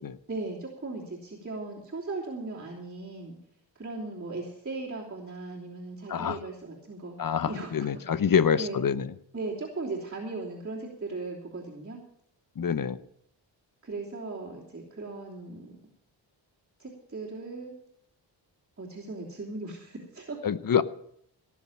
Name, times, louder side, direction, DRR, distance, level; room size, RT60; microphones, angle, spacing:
voice 1, 0.3-3.4 3.7-8.2 8.6-8.8 9.3-12.0 13.8-15.7 16.8-17.8 18.8-20.4, right 3 dB, 30° right, -5 dB, 3.2 m, -38 dB
voice 2, 7.2-9.1 12.6-13.0 20.4-20.8, left 7 dB, 45° left, 14 dB, 0.9 m, -26 dB
17.5 x 7.3 x 7.4 m, 0.68 s
cardioid pair, 90°, 46 cm